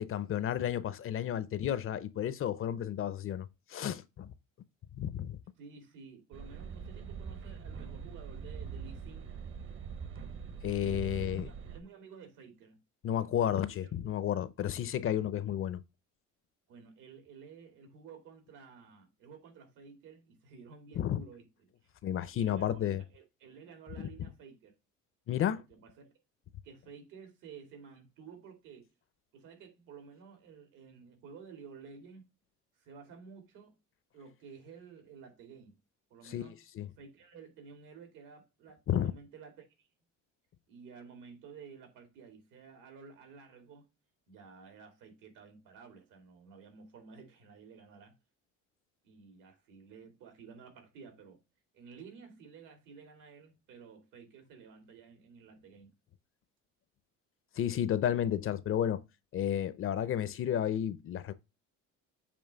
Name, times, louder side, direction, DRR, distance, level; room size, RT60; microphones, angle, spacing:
voice 1, 0.0-4.3 4.9-5.4 10.6-11.5 13.0-15.8 21.0-21.2 22.0-23.0 24.0-24.1 25.3-25.6 36.2-36.9 38.9-39.1 57.6-59.0 59.3-61.3, left 10 dB, 45° left, 0.6 m, -32 dB
voice 2, 5.6-9.4 10.8-12.8 13.8-13.9 16.7-21.7 22.3-24.7 25.5-26.1 26.6-28.9 29.3-32.3 32.8-33.8 34.1-35.8 36.1-36.6 37.0-39.9 40.7-43.9 44.3-48.1 49.0-51.4 51.7-55.9, right 5 dB, 75° right, 2.5 m, -53 dB
sound 1, 6.3-11.8, right 6 dB, 40° right, 1.0 m, -43 dB
7.0 x 3.0 x 5.3 m
cardioid pair, 120°, 31 cm